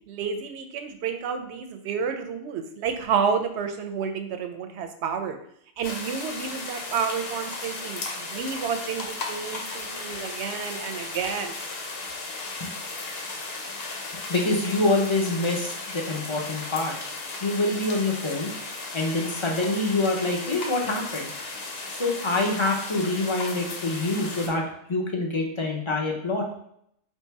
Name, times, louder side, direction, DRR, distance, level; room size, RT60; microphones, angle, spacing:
voice 1, 0.0-5.4 5.8-11.5, right 6 dB, 70° right, 7 dB, 0.8 m, -30 dB
sound 1, 5.8-24.5, left 3 dB, 60° left, 0.9 m, -35 dB
voice 2, 14.3-16.9 17.4-18.5 18.9-21.3 21.9-24.6 24.9-26.4, left 2 dB, 30° left, 0 dB, 0.6 m, -26 dB
3.3 x 2.7 x 4.5 m, 0.69 s
omnidirectional pair, 1.3 m